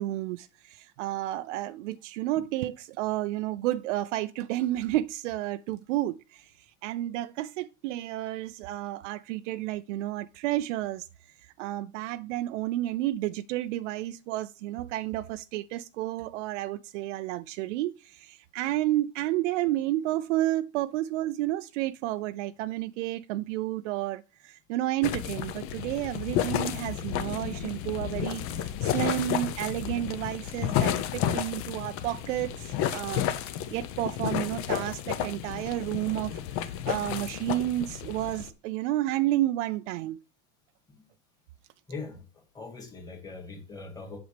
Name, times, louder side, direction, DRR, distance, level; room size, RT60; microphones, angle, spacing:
voice 1, 0.0-6.5 6.8-11.1 11.6-33.2 33.7-36.4 36.9-40.2, right 15 dB, 75° right, 0.5 m, -31 dB
sound 1, 25.0-38.5, left 10 dB, 35° left, 0.7 m, -32 dB
voice 2, 41.9-42.2 42.5-44.2, left 4 dB, 10° left, 1.9 m, -41 dB
8.0 x 6.1 x 3.3 m
supercardioid pair, 155°, 37 cm